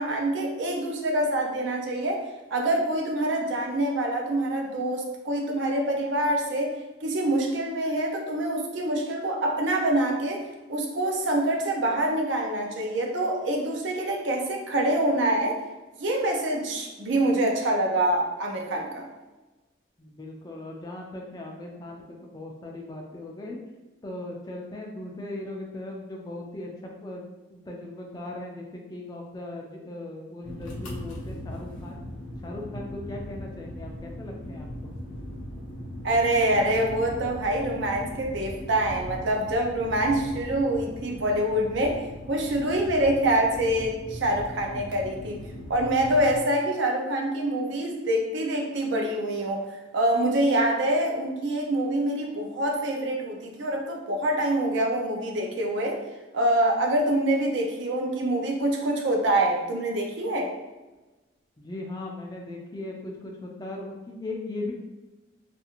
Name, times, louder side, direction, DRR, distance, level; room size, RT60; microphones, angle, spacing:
voice 1, 0.0-6.7 7.0-15.6 16.0-19.1 36.0-42.0 42.3-45.4 45.7-56.0 56.3-60.5, right 1 dB, 70° right, 1 dB, 0.5 m, -25 dB
voice 2, 20.0-23.6 24.0-26.7 27.0-32.0 32.4-34.9 61.6-64.7, left 2 dB, 20° left, 0 dB, 0.3 m, -38 dB
sound 1, 30.4-46.4, left 1 dB, 80° left, 0.6 m, -39 dB
2.4 x 2.4 x 2.8 m, 1.1 s
head